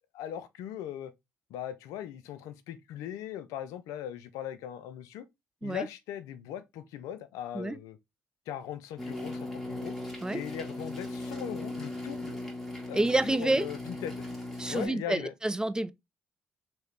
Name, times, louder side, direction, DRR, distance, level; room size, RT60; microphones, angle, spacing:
voice 1, 0.1-1.1 1.5-5.3 5.6-8.0 8.5-10.0 10.3-12.4 12.9-14.2 14.7-15.3, left 10 dB, 75° left, 0.4 m, -39 dB
sound 1, 9.0-14.9, left 2 dB, 5° left, 1.6 m, -38 dB
voice 2, 12.9-13.7 14.6-15.9, right 2 dB, 15° right, 0.4 m, -28 dB
3.0 x 2.8 x 3.2 m
hypercardioid pair, 50°, 6 cm